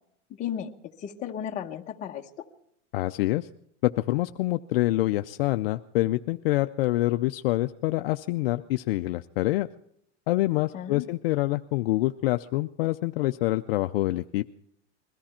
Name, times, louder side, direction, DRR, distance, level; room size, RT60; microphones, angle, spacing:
voice 1, 0.4-0.7 1.0-2.5 10.7-11.1, left 9 dB, 20° left, 2 dB, 1.0 m, -34 dB
voice 2, 2.9-3.5 3.8-9.7 10.3-14.4, left 17 dB, 55° left, 9 dB, 0.5 m, -26 dB
21.5 x 14.0 x 4.3 m, 0.70 s
supercardioid pair, 155°, 36 cm